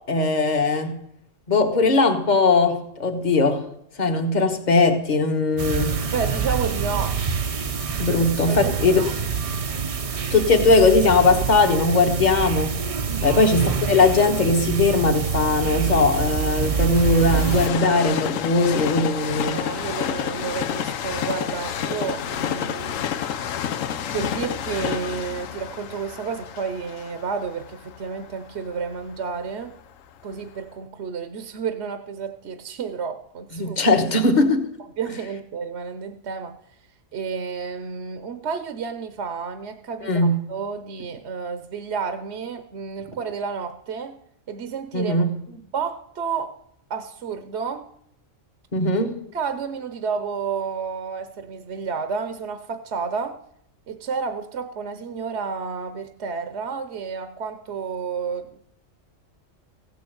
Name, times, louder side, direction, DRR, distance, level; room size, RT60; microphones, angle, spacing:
voice 1, 0.1-1.0 1.5-3.6 4.0-5.9 8.0-9.0 10.3-12.8 13.2-19.6 33.5-34.7 40.0-40.4 44.9-45.3 48.7-49.2, left 3 dB, 35° left, 6 dB, 1.4 m, -19 dB
sound 1, 5.6-17.7, right 6 dB, 40° right, 0.5 m, -26 dB
voice 2, 6.1-7.2 8.1-8.2 8.5-9.1 13.1-13.8 19.5-23.0 24.1-29.7 30.2-33.8 35.0-36.6 37.1-44.2 44.5-45.1 45.5-46.6 46.9-47.9 49.3-53.4 53.9-58.6, right 6 dB, 60° right, 9 dB, 1.0 m, -31 dB
Train, 13.9-29.9 30.5-30.6, left 9 dB, 80° left, 1.1 m, -30 dB
15.5 x 7.0 x 7.8 m, 0.73 s
omnidirectional pair, 1.3 m